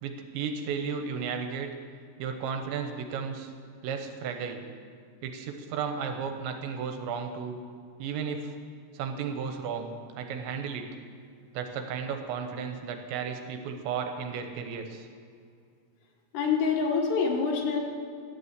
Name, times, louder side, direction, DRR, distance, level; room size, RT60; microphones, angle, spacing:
voice 1, 0.0-1.7 2.2-3.5 3.8-4.6 5.2-7.6 8.0-8.5 8.9-10.9 11.5-15.1, right 6 dB, 80° right, 5 dB, 3.0 m, -34 dB
voice 2, 16.3-17.8, left 5 dB, 70° left, 0 dB, 3.3 m, -26 dB
12.0 x 8.3 x 8.1 m, 2.3 s
omnidirectional pair, 5.4 m